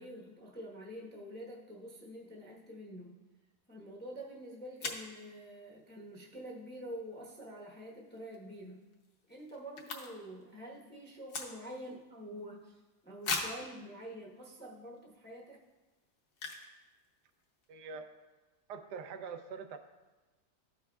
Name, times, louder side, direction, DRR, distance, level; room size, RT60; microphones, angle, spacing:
voice 1, 0.0-3.2 3.7-8.8 9.3-15.6, equal, 10° left, -3 dB, 0.6 m, -47 dB
sound 1, 4.1-4.2 4.8-5.1 8.1-8.3 8.7-8.8 8.9-10.4 10.7-11.9 12.4-12.5 13.2-13.7 14.4-14.5 15.0-15.1 16.3-16.8 17.0-17.1 17.3-17.6, left 4 dB, 60° left, 1.2 m, -39 dB
voice 2, 17.7-18.1 18.7-19.8, right 5 dB, 80° right, 7 dB, 1.2 m, -43 dB
13.5 x 5.5 x 2.3 m, 1.2 s
omnidirectional pair, 1.8 m